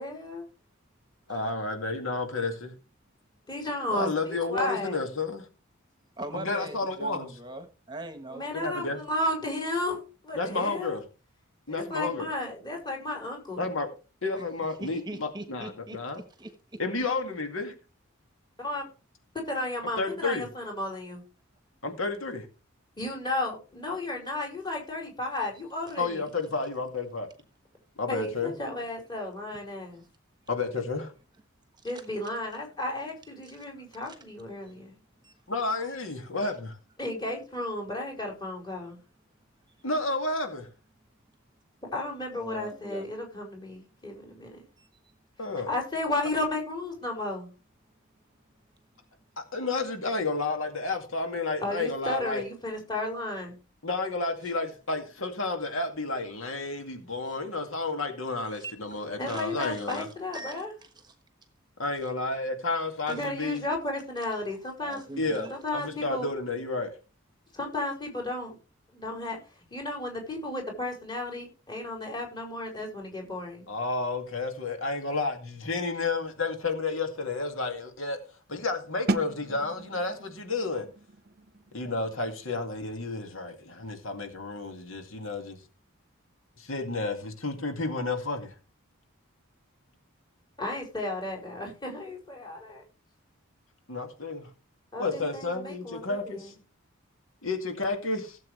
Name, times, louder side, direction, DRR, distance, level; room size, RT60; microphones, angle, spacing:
voice 1, 0.0-0.4 3.5-5.0 8.3-11.0 11.7-13.7 18.6-18.9 19.5-21.2 23.0-26.2 28.1-30.0 31.8-34.9 37.0-39.0 41.9-44.6 45.7-47.5 51.6-53.6 59.2-60.7 63.1-65.0 65.5-66.3 67.5-68.6 68.9-73.7 90.6-92.8 94.9-96.5, left 2 dB, 20° left, 4.5 m, -33 dB
voice 2, 1.3-2.7 3.9-5.4 6.3-7.3 8.5-9.0 10.4-11.0 11.7-12.3 13.6-13.9 14.2-16.2 16.8-17.7 20.0-20.4 21.8-22.5 26.0-27.3 28.0-28.5 30.5-31.1 35.5-36.8 39.8-40.7 45.4-45.7 49.4-52.4 53.8-60.1 61.8-63.6 65.2-65.5 65.7-66.9 73.7-78.2 78.5-80.9 81.7-85.6 86.6-88.5 93.9-94.5 95.0-96.5 97.4-98.4, left 3 dB, 70° left, 2.2 m, -31 dB
voice 3, 6.2-8.4 14.8-16.8 29.2-29.3 30.0-30.1 31.8-31.9 33.6-33.7 34.1-34.2 34.7-34.8 35.2-35.4 42.3-43.1 44.8-45.1 54.4-54.5 57.3-57.4 58.5-59.0 59.3-59.4 59.7-60.0 60.3-61.2 63.1-63.2 64.8-65.6, right 1 dB, 20° right, 1.2 m, -42 dB
sound 1, 79.1-84.8, right 2 dB, 45° right, 0.8 m, -37 dB
16.5 x 7.6 x 3.2 m
head